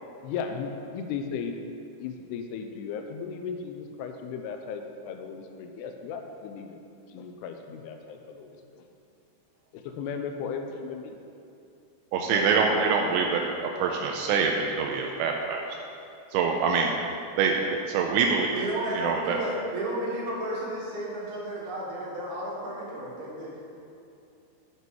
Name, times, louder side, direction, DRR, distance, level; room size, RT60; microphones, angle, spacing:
voice 1, 0.2-1.5 2.0-6.8 7.1-8.8 9.7-11.2 12.3-12.5, left 6 dB, 80° left, 5 dB, 2.5 m, -36 dB
voice 2, 12.1-15.7 16.3-16.9 17.4-18.6 18.9-19.4, right 5 dB, 85° right, 1 dB, 2.9 m, -25 dB
voice 3, 18.5-23.8, right 1 dB, 65° right, -4 dB, 3.4 m, -33 dB
8.3 x 8.0 x 4.6 m, 2.6 s
omnidirectional pair, 5.0 m